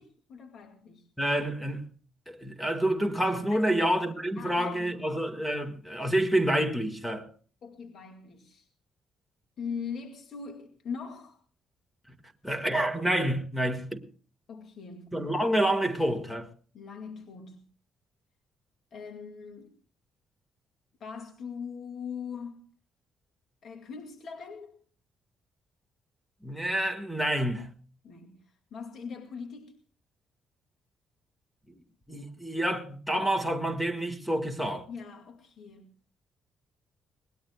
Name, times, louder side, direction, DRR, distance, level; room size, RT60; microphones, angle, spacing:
voice 1, 0.0-1.1 3.5-3.8 4.4-5.1 7.6-8.7 9.6-11.4 14.5-15.2 16.7-17.6 18.9-19.7 21.0-22.7 23.6-24.8 28.0-29.8 34.9-35.9, left 6 dB, 60° left, 2.3 m, -41 dB
voice 2, 1.2-1.9 2.3-7.3 12.4-14.0 15.1-16.5 26.4-27.8 31.7-31.8 32.1-34.9, right 1 dB, 5° left, 1.8 m, -28 dB
23.0 x 20.0 x 2.3 m
cardioid pair, 90°, 0 cm